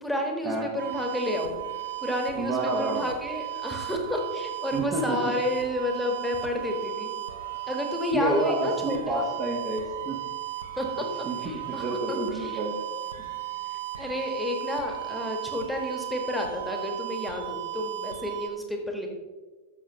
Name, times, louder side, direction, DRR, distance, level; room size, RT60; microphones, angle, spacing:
voice 1, 0.0-1.6 2.0-7.1 7.7-9.2 10.8-12.6 13.7-19.1, left 1 dB, ahead, 1 dB, 1.5 m, -31 dB
sound 1, 0.8-18.5, right 15 dB, 65° right, 1.0 m, -35 dB
voice 2, 2.3-3.1 4.7-5.3 8.1-10.2 11.3-12.8, right 2 dB, 30° right, 0 dB, 1.2 m, -29 dB
13.5 x 6.3 x 3.1 m, 1.4 s
figure-of-eight pair, 90°, 0 cm